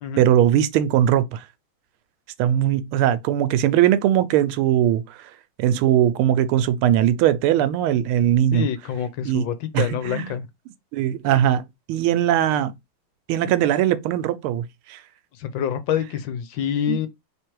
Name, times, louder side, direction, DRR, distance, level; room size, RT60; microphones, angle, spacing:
voice 1, 0.2-1.4 2.4-5.2 5.6-8.7 9.3-10.3 10.9-12.7 13.3-15.0 16.9-17.0, right 11 dB, 85° right, 1.5 m, -20 dB
voice 2, 8.5-10.5 15.3-17.1, left 9 dB, 70° left, 1.4 m, -26 dB
3.5 x 3.3 x 4.5 m
omnidirectional pair, 2.3 m